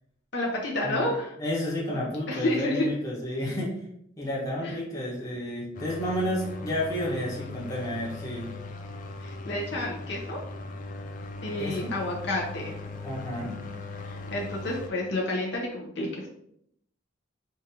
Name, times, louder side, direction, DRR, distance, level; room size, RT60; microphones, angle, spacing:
voice 1, 0.3-1.3 2.3-2.9 4.6-4.7 9.2-10.4 11.4-12.8 14.0-16.3, left 1 dB, 55° left, -2 dB, 0.8 m, -30 dB
voice 2, 1.4-3.8 4.2-8.5 11.6-11.9 13.0-13.6, left 1 dB, 15° left, -5 dB, 1.0 m, -31 dB
sound 1, 5.7-14.9, left 2 dB, 40° left, 0.4 m, -39 dB
5.0 x 2.5 x 2.8 m, 0.73 s
head